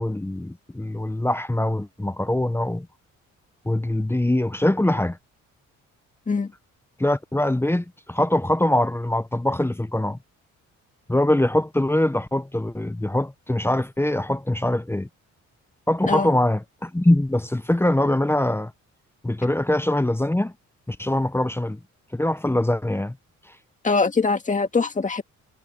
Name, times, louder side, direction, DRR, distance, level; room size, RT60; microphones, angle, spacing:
voice 1, 0.0-2.9 3.6-5.2 7.0-10.2 11.1-15.1 15.9-18.7 19.2-20.5 20.9-21.8 22.1-23.2, left 1 dB, 10° left, 1.0 m, -23 dB
voice 2, 23.8-25.2, left 4 dB, 25° left, 2.1 m, -22 dB
cardioid pair, 90°, 30 cm